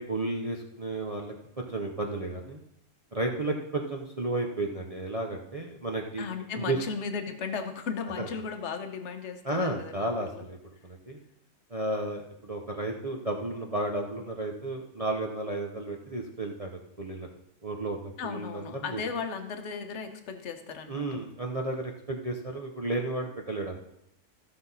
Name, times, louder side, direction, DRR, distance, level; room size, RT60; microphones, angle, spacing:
voice 1, 0.0-2.6 3.1-6.2 6.6-6.8 8.2-8.3 9.4-10.6 10.8-11.2 11.7-17.3 17.6-19.0 20.9-23.8, right 2 dB, 35° right, 0 dB, 0.6 m, -33 dB
voice 2, 6.2-10.4 18.2-21.2, left 5 dB, 50° left, 6 dB, 1.2 m, -36 dB
15.0 x 5.8 x 4.1 m, 0.80 s
omnidirectional pair, 1.6 m